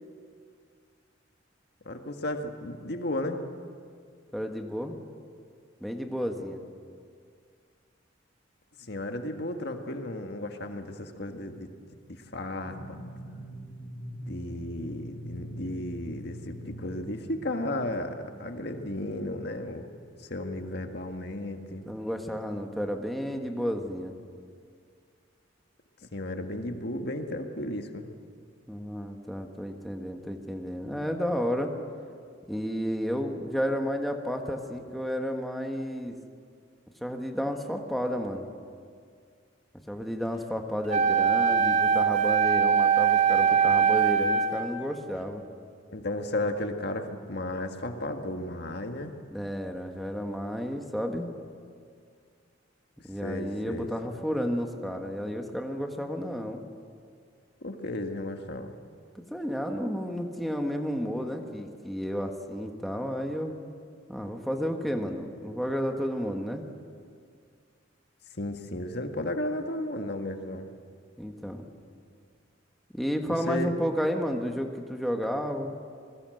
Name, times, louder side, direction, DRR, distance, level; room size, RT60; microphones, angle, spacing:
voice 1, 1.9-3.4 8.9-11.7 12.1-13.0 14.3-19.9 20.3-21.9 26.1-28.1 45.9-49.1 53.2-53.9 57.6-58.7 68.4-70.7 73.3-73.7, left 1 dB, 55° left, 5 dB, 1.7 m, -34 dB
voice 2, 4.3-4.9 5.8-6.6 21.9-24.2 28.7-31.7 32.5-36.2 37.0-38.5 39.9-45.4 49.3-51.3 53.0-56.6 59.1-63.6 64.1-66.6 71.2-71.6 72.9-75.7, equal, ahead, 3 dB, 1.5 m, -32 dB
sound 1, 12.6-21.0, equal, 30° left, 5.8 m, -44 dB
Wind instrument woodwind instrument, 40.9-44.7, right 7 dB, 40° right, 2.4 m, -22 dB
27.0 x 20.5 x 7.9 m, 2.2 s
head